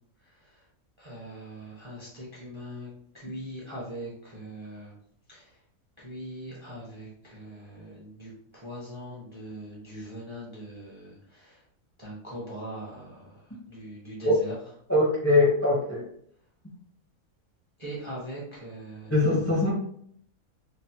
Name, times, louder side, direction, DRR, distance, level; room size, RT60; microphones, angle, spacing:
voice 1, 1.0-2.9 3.1-4.9 5.3-5.4 6.0-11.6 12.0-13.3 13.7-14.5 17.8-19.1, right 1 dB, 30° right, -6 dB, 0.5 m, -41 dB
voice 2, 14.9-16.0 19.1-19.7, left 2 dB, 20° left, -5 dB, 0.4 m, -22 dB
3.2 x 2.0 x 2.8 m, 0.63 s
omnidirectional pair, 1.6 m